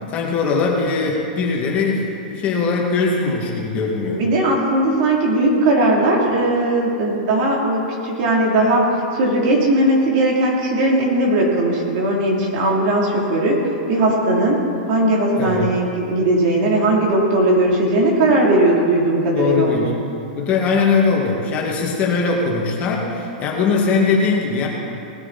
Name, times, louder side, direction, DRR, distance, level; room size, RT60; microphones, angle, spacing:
voice 1, 0.1-4.2 15.4-15.7 19.3-19.9 20.4-24.7, left 4 dB, 30° left, -2 dB, 2.2 m, -20 dB
voice 2, 4.1-19.9, right 1 dB, 50° right, -2 dB, 3.2 m, -18 dB
19.0 x 9.6 x 4.2 m, 2.6 s
hypercardioid pair, 140°, 5 cm